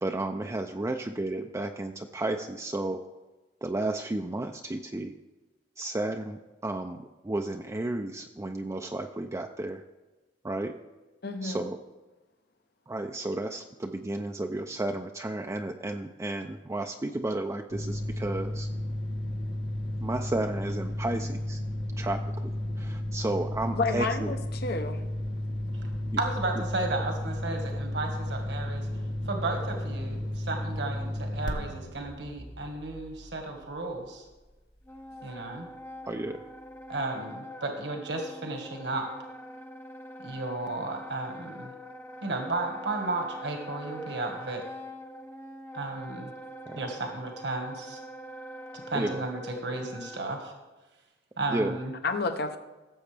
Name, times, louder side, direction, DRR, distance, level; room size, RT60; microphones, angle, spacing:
voice 1, 0.0-3.1 3.6-5.1 5.8-9.8 10.4-10.8 11.4-11.8 12.9-18.7 20.0-21.6 22.0-24.3 26.1-26.2 36.0-36.4 46.7-46.8 48.9-49.2 51.5-51.8, right 2 dB, 15° right, 4 dB, 0.4 m, -32 dB
voice 2, 11.2-11.7 23.8-24.4 24.6-25.0 52.0-52.6, left 3 dB, 60° left, 8 dB, 0.8 m, -29 dB
sound 1, 17.7-34.1, left 1 dB, 80° left, 1.6 m, -33 dB
voice 3, 26.2-28.9 29.2-34.2 35.2-35.7 36.9-39.1 40.2-41.7 42.2-44.6 45.7-46.3 46.7-48.0 48.9-50.5 51.4-51.9, right 2 dB, 70° right, 3 dB, 1.6 m, -33 dB
Wind instrument woodwind instrument, 34.8-50.3, equal, 15° left, 0.8 m, -44 dB
17.0 x 7.6 x 3.4 m, 1.2 s
head